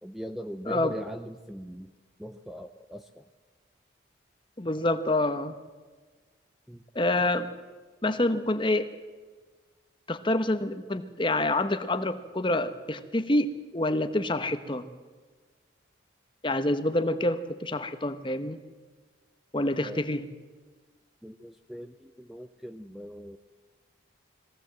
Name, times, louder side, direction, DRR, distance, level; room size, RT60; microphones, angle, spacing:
voice 1, 0.0-1.9 2.2-3.3 6.7-6.8 19.8-20.0 21.2-23.4, equal, ahead, 7 dB, 0.5 m, -40 dB
voice 2, 4.6-5.6 6.9-7.5 8.0-8.9 10.1-14.8 16.4-18.6 19.5-20.2, left 1 dB, 25° left, 9 dB, 1.0 m, -27 dB
21.5 x 16.5 x 7.6 m, 1.4 s
head